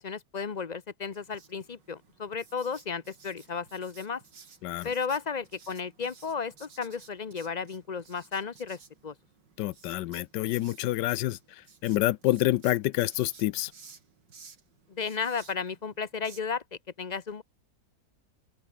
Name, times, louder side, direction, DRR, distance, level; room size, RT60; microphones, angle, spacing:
voice 1, 0.0-4.2 4.8-9.1 14.9-16.6 17.0-17.4, left 5 dB, 35° left, 0.8 m, -34 dB
Writing, 1.1-16.4, right 5 dB, 90° right, 3.4 m, -56 dB
voice 2, 9.6-11.4 11.8-13.7, left 15 dB, 85° left, 1.3 m, -27 dB
open air
omnidirectional pair, 1.9 m